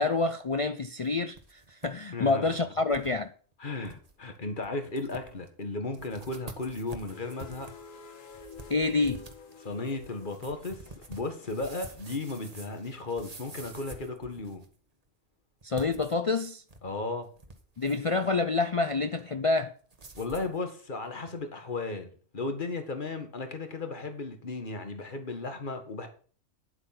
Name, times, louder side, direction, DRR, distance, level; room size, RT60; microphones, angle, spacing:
voice 1, 0.0-1.4 1.7-3.3 8.7-9.3 15.6-16.6 17.8-19.7, left 3 dB, 65° left, 0.3 m, -27 dB
sound 1, 1.0-1.9 2.2-2.3 2.9-3.1 3.5-3.6 3.8-4.1 4.6-4.7 5.0-5.5 5.9-14.8 15.6-16.9 17.2-18.2 19.9-20.6, right 2 dB, 30° right, 1.3 m, -48 dB
voice 2, 2.1-2.5 3.6-7.7 9.6-10.8 11.1-14.6 16.8-17.3 20.1-26.1, left 3 dB, 40° left, 1.8 m, -35 dB
sound 2, 7.1-13.4, left 5 dB, 85° left, 2.0 m, -50 dB
9.9 x 8.1 x 5.9 m
omnidirectional pair, 1.3 m